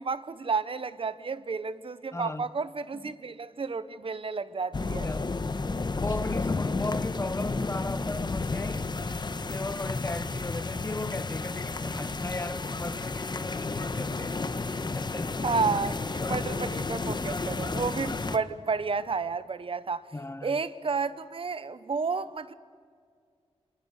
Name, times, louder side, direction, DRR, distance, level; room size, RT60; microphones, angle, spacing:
voice 1, 0.0-5.1 15.4-20.1 20.4-22.5, right 4 dB, 55° right, 1.2 m, -31 dB
voice 2, 2.1-2.5 2.9-3.2 5.0-5.6 6.0-8.9 9.5-14.4 14.9-15.3 16.2-16.5 20.1-20.6, left 2 dB, 25° left, 1.3 m, -37 dB
sound 1, 4.7-18.4, left 3 dB, 40° left, 1.3 m, -32 dB
29.5 x 28.0 x 6.7 m
wide cardioid pair, 80°, 11 cm